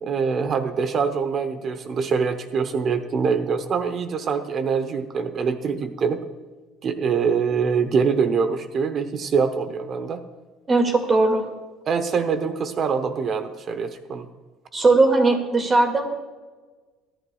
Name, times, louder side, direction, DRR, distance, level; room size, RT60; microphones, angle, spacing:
voice 1, 0.0-6.2 6.8-10.2 11.9-14.3, right 5 dB, 40° right, 9 dB, 0.8 m, -24 dB
voice 2, 10.7-11.5 14.7-16.0, right 3 dB, 25° right, 4 dB, 2.1 m, -18 dB
24.0 x 11.0 x 2.3 m, 1.3 s
cardioid pair, 130°, 0 cm